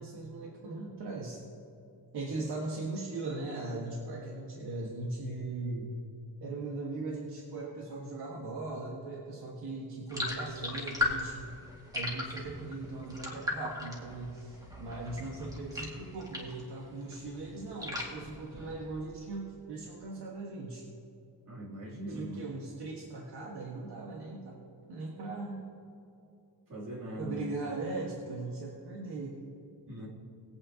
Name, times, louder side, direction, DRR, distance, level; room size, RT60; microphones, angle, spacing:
voice 1, 0.0-1.4 2.1-5.9 6.4-11.5 11.9-20.9 22.1-24.6 24.9-25.6 27.2-29.4, right 2 dB, 75° right, -2 dB, 1.6 m, -39 dB
sound 1, 10.1-16.7 17.0-19.1, left 2 dB, 10° right, 2.0 m, -37 dB
voice 2, 21.5-22.5 26.7-27.5 29.9-30.1, equal, 55° right, -5 dB, 3.0 m, -40 dB
20.5 x 8.7 x 2.8 m, 2.7 s
wide cardioid pair, 145°, 39 cm